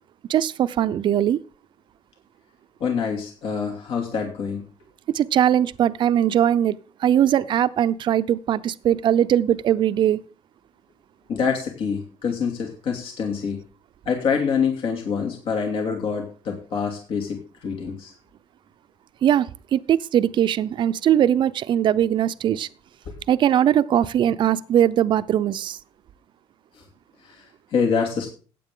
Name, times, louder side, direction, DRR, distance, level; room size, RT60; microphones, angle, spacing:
voice 1, 0.3-1.4 5.1-6.8 7.0-10.2 19.2-22.7 23.3-25.8, right 10 dB, 50° right, 14 dB, 0.7 m, -20 dB
voice 2, 2.8-4.6 11.3-13.6 14.0-18.1 23.1-23.2 26.7-26.8 27.2-28.3, left 6 dB, 65° left, 1 dB, 2.8 m, -26 dB
15.0 x 9.3 x 3.8 m, 0.37 s
cardioid pair, 115°, 10 cm